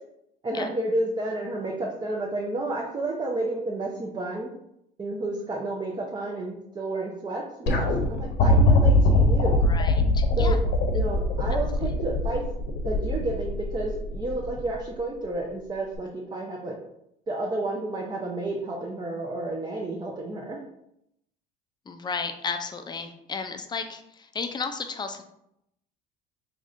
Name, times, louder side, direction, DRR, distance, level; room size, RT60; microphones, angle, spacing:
voice 1, 0.4-4.5 5.0-9.6 10.4-10.6 10.9-12.4 12.8-16.7 17.3-20.6, right 2 dB, 20° right, -1 dB, 0.6 m, -31 dB
sound 1, 7.7-14.8 16.0-16.1, left 4 dB, 55° left, 0.8 m, -23 dB
voice 2, 9.7-10.6 21.9-25.2, left 5 dB, 20° left, 7 dB, 0.4 m, -33 dB
3.5 x 3.1 x 2.5 m, 0.78 s
supercardioid pair, 85°, 21 cm